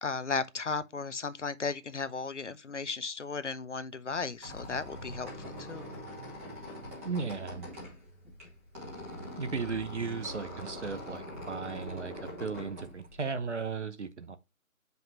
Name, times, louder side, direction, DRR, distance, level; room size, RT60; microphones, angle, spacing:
voice 1, 0.0-5.9, left 4 dB, 55° left, 0.7 m, -35 dB
Squeak, 4.1-13.7, left 1 dB, 10° right, 1.5 m, -43 dB
voice 2, 7.0-7.7 9.4-14.4, right 5 dB, 55° right, 0.9 m, -36 dB
7.7 x 5.3 x 2.9 m
figure-of-eight pair, 155°, 42 cm